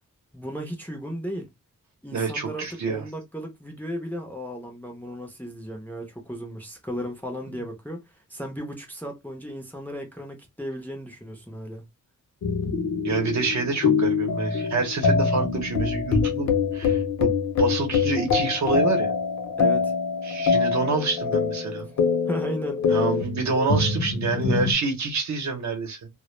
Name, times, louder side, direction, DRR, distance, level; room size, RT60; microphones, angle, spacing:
voice 1, 0.3-1.5 2.0-11.8 19.6-19.9 22.3-23.0, equal, 5° left, 0.4 m, -35 dB
voice 2, 2.1-3.0 13.0-17.3 17.6-19.1 20.2-21.9 22.9-26.0, right 4 dB, 60° right, 0.8 m, -27 dB
sound 1, 12.4-24.7, left 5 dB, 60° left, 0.5 m, -24 dB
2.1 x 2.0 x 3.0 m
wide cardioid pair, 170°, 32 cm